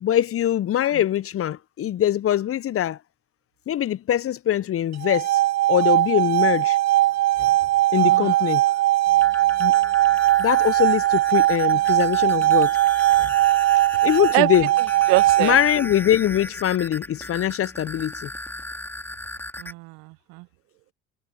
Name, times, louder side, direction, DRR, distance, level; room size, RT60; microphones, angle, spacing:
voice 1, 0.0-3.0 3.7-5.4 5.7-6.8 7.4-7.5 7.9-8.6 9.6-9.7 10.4-12.7 13.2-13.3 14.0-14.7 15.4-18.3, left 11 dB, 40° left, 0.7 m, -22 dB
sound 1, 4.9-15.9, right 15 dB, 45° right, 0.7 m, -20 dB
voice 2, 8.0-8.3 14.3-14.5 15.1-15.6 19.6-20.4, right 27 dB, 70° right, 1.1 m, -24 dB
sound 2, 9.1-19.7, left 1 dB, 5° left, 2.3 m, -37 dB
hypercardioid pair, 60°, 36 cm